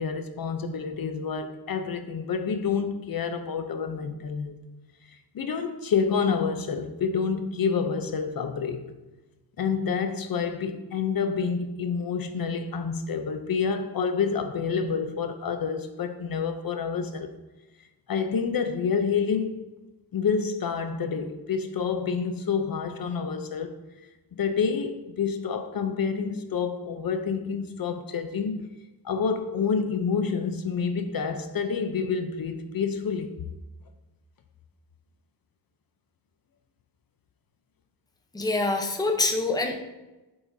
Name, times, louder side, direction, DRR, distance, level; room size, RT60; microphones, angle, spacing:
voice 1, 0.0-4.5 5.1-8.9 9.6-17.3 18.1-19.7 20.1-23.7 24.4-28.7 29.0-33.3, left 6 dB, 60° left, 0.8 m, -28 dB
voice 2, 38.3-39.8, left 2 dB, 10° left, 0.8 m, -25 dB
11.0 x 7.9 x 2.7 m
wide cardioid pair, 165°, 39 cm